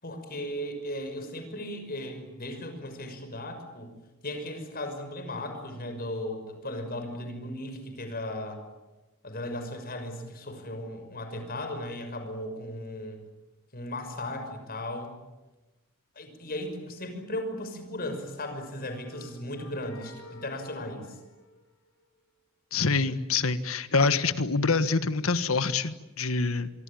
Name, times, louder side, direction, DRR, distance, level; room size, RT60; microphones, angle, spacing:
voice 1, 0.0-3.9 4.2-8.6 9.2-13.2 13.7-15.2 16.1-21.1, left 1 dB, 45° left, 7 dB, 6.1 m, -36 dB
sound 1, 18.3-22.2, left 1 dB, 90° left, 6.4 m, -52 dB
voice 2, 22.7-26.7, left 4 dB, 75° left, 12 dB, 1.5 m, -26 dB
26.0 x 23.5 x 8.9 m, 1.1 s
head